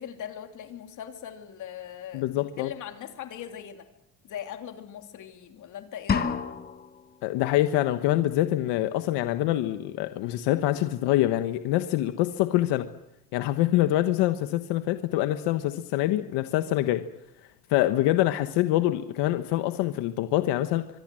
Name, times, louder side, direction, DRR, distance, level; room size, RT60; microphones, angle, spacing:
voice 1, 0.0-3.8 4.2-6.4, left 9 dB, 50° left, 5 dB, 3.0 m, -40 dB
voice 2, 2.1-2.7 7.2-12.9 13.3-17.0 17.7-21.0, left 14 dB, 85° left, 9 dB, 1.4 m, -25 dB
sound 1, 6.1-7.1, left 6 dB, 25° left, 1.3 m, -28 dB
25.0 x 22.0 x 7.7 m, 0.88 s
cardioid pair, 160°, 40 cm